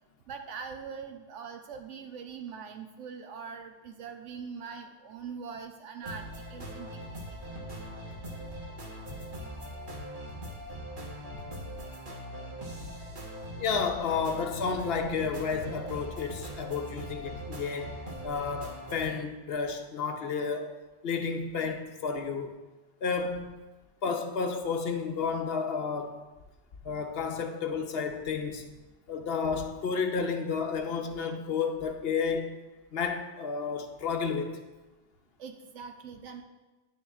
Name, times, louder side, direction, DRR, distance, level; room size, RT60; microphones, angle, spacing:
voice 1, 0.3-7.4 35.4-36.4, right 6 dB, 80° right, 0.9 m, -42 dB
sound 1, 6.0-19.1, equal, 45° right, 1.4 m, -41 dB
voice 2, 13.6-18.0 18.2-20.8 21.0-22.5 23.0-23.5 24.0-26.2 26.8-28.7 29.1-32.6 32.9-34.5, left 5 dB, 60° left, 0.9 m, -31 dB
10.5 x 7.0 x 2.4 m
omnidirectional pair, 1.2 m